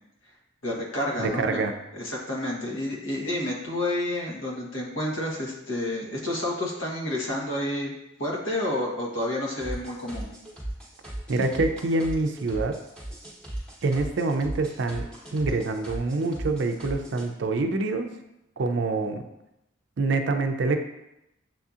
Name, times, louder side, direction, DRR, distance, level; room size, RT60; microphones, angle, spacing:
voice 1, 0.6-1.6 1.9-7.9 8.2-10.3, left 1 dB, 85° left, -3 dB, 1.2 m, -30 dB
voice 2, 1.2-1.7 11.3-12.8 13.8-18.1 18.6-19.2 20.0-20.8, right 3 dB, 60° right, 6 dB, 0.4 m, -26 dB
sound 1, 9.6-17.3, right 1 dB, 5° left, 1.1 m, -37 dB
7.4 x 2.7 x 2.4 m, 0.87 s
head